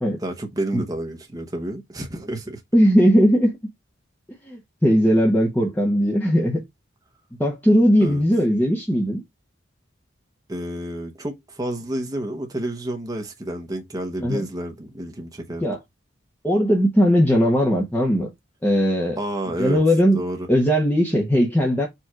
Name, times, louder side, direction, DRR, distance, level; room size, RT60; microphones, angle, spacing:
voice 1, 0.2-2.6 8.0-8.2 10.5-15.6 19.2-19.8 20.1-20.5, right 1 dB, 20° right, 0.9 m, -30 dB
voice 2, 2.7-3.5 4.5-6.6 7.4-9.2 14.2-14.5 15.6-15.8 16.4-18.3 18.6-19.2 19.6-20.2 20.5-21.9, equal, 10° left, 0.8 m, -18 dB
4.6 x 2.4 x 4.5 m
head